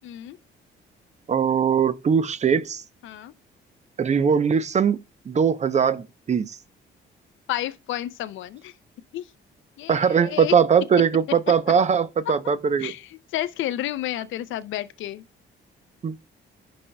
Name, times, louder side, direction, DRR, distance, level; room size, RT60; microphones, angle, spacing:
voice 1, 0.0-0.4 3.0-3.3 7.5-8.7 9.1-9.3 9.8-10.5 12.8-15.2, left 13 dB, 75° left, 0.5 m, -31 dB
voice 2, 1.3-2.8 4.0-5.0 5.3-6.6 9.9-12.9 16.0-16.1, right 7 dB, 35° right, 0.6 m, -21 dB
11.0 x 4.3 x 2.2 m
cardioid pair, 90°, 20 cm